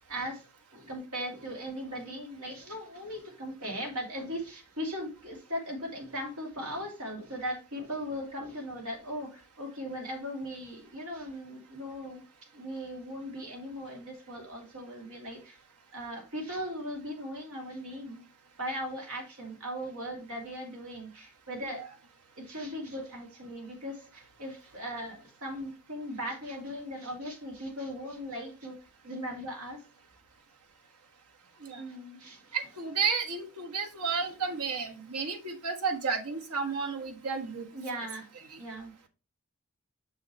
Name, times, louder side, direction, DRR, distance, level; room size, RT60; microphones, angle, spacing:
voice 1, 0.1-0.4 0.7-12.2 12.5-15.6 15.9-18.2 18.6-21.8 22.4-28.8 29.0-29.8 31.8-32.6 37.7-38.3 38.6-38.9, equal, 75° right, 0 dB, 2.8 m, -38 dB
voice 2, 32.5-37.7, right 5 dB, 90° right, 4 dB, 1.4 m, -32 dB
6.5 x 6.4 x 3.1 m, 0.33 s
head